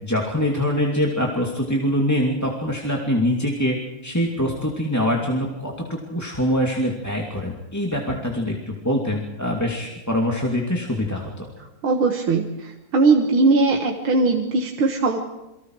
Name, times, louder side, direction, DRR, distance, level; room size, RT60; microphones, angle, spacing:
voice 1, 0.0-3.8 4.0-11.5, equal, 10° left, -1 dB, 2.4 m, -24 dB
voice 2, 11.8-15.2, right 3 dB, 75° right, 2 dB, 2.3 m, -19 dB
29.5 x 23.5 x 4.8 m, 0.98 s
omnidirectional pair, 2.3 m